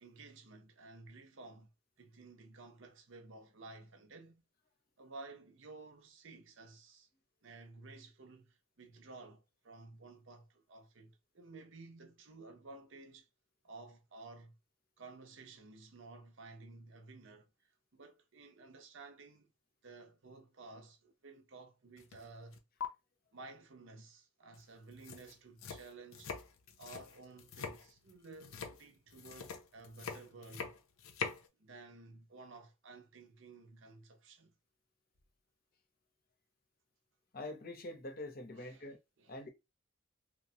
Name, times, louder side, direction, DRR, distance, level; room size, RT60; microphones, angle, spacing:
voice 1, 0.0-1.7 2.0-4.4 5.0-7.1 7.4-13.3 13.6-14.6 15.0-17.5 17.9-19.5 19.8-22.6 23.3-26.3 26.8-30.7 31.6-34.5 38.5-39.4, right 3 dB, 65° right, 0.6 m, -54 dB
sound 1, 22.0-22.2 22.5-22.8 24.5-24.6 24.9-31.5, left 5 dB, 80° left, 0.6 m, -44 dB
voice 2, 37.3-39.0 39.3-39.5, left 2 dB, 45° left, 0.7 m, -45 dB
3.0 x 2.1 x 2.7 m
head